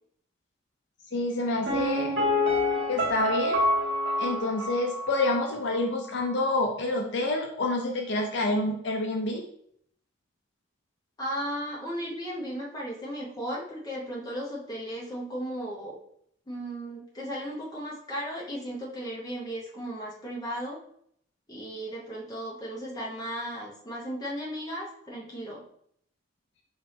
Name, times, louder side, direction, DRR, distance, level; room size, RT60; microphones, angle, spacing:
voice 1, 1.1-2.1 2.9-3.6 4.2-9.5, left 2 dB, 60° left, 2 dB, 0.5 m, -28 dB
Piano, 1.7-5.4 5.7-5.8, left 1 dB, 65° right, 1.2 m, -27 dB
voice 2, 11.2-16.0 16.5-20.8 21.5-25.6, equal, 20° left, -4 dB, 0.9 m, -35 dB
4.2 x 3.1 x 3.3 m, 0.67 s
head